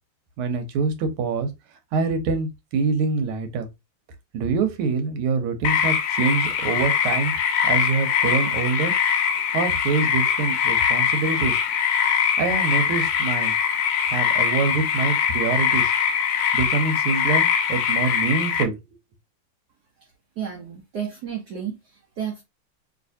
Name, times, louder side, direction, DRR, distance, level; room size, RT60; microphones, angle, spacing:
voice 1, 0.4-1.5 1.9-3.7 4.3-7.3 7.6-8.9 9.5-11.6 12.4-13.5 14.1-15.9 16.5-18.8, right 4 dB, 85° right, 1.7 m, -25 dB
sound 1, 5.6-18.6, left 8 dB, 75° left, 1.2 m, -22 dB
voice 2, 20.4-22.4, right 8 dB, 65° right, 1.1 m, -32 dB
3.2 x 2.9 x 2.6 m
omnidirectional pair, 2.3 m